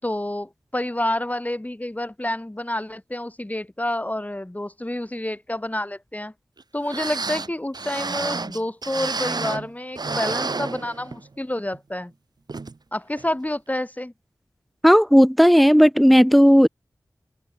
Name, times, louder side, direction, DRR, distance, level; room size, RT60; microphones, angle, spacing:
voice 1, 0.0-6.3 6.7-12.1 12.9-14.1, left 1 dB, 20° left, 3.8 m, -28 dB
sound 1, 6.6-6.7 6.9-9.7 10.0-11.3 11.7-11.8 12.5-12.7 13.2-13.3, right 3 dB, 70° right, 4.5 m, -30 dB
voice 2, 14.8-16.7, equal, ahead, 3.6 m, -14 dB
cardioid pair, 40°, 7 cm